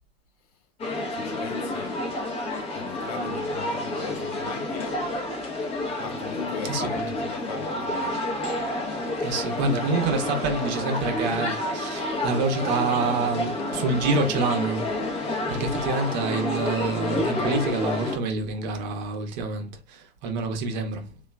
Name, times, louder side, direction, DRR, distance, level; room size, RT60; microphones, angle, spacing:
sound 1, 0.8-18.2, left 1 dB, 20° left, 0.7 m, -29 dB
voice 1, 1.1-2.3 2.7-5.2 6.0-8.4, left 7 dB, 40° left, 0.4 m, -39 dB
voice 2, 8.9-21.1, right 3 dB, 45° right, 0.8 m, -27 dB
2.9 x 2.3 x 2.2 m
hypercardioid pair, 115°, 32 cm